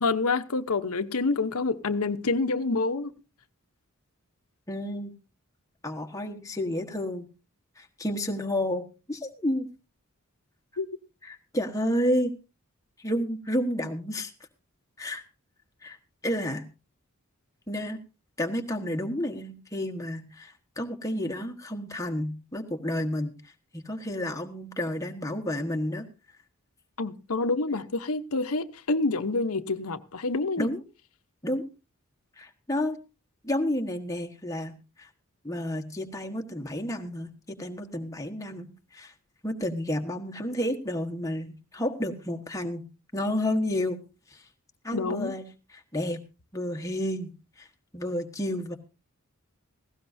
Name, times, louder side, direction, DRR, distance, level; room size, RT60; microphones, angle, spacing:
voice 1, 0.0-3.1 10.8-10.9 27.0-30.7 44.9-45.3, left 3 dB, 90° left, 0.9 m, -27 dB
voice 2, 4.7-5.1 5.8-7.3 7.8-9.7 11.2-12.3 13.0-14.3 15.0-15.2 15.8-16.0 16.2-16.6 17.7-18.0 18.4-23.3 23.7-26.1 30.6-30.8 31.4-31.7 32.4-33.0 33.4-35.1 35.4-37.3 37.6-39.1 39.4-42.8 43.1-44.0 44.3-44.4 44.8-45.5 45.7-46.2 46.5-47.3 47.6-47.7 47.9-48.8, left 1 dB, 15° left, 1.3 m, -30 dB
18.0 x 16.5 x 2.7 m
head